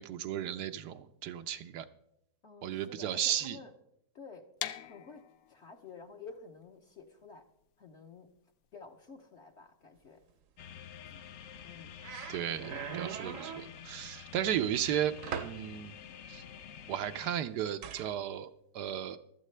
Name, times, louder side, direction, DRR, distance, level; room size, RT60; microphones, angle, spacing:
voice 1, 0.0-1.9 2.6-3.6 12.3-15.2 15.4-15.9 16.3-16.4 16.9-19.2, right 10 dB, 85° right, 8 dB, 1.2 m, -34 dB
voice 2, 2.4-3.7 4.1-4.5 4.8-7.4 7.8-8.3 8.7-10.2 11.0-11.2 11.6-12.0 14.4-14.6, left 4 dB, 50° left, 3 dB, 1.0 m, -51 dB
sound 1, 4.6-10.4, left 11 dB, 90° left, 1.3 m, -46 dB
sound 2, 10.6-17.4, left 9 dB, 70° left, 0.6 m, -49 dB
sound 3, 11.6-11.7 12.0-13.7 14.8-15.6 17.8-18.1, right 7 dB, 60° right, 0.9 m, -40 dB
15.5 x 12.0 x 3.3 m, 0.76 s
omnidirectional pair, 1.7 m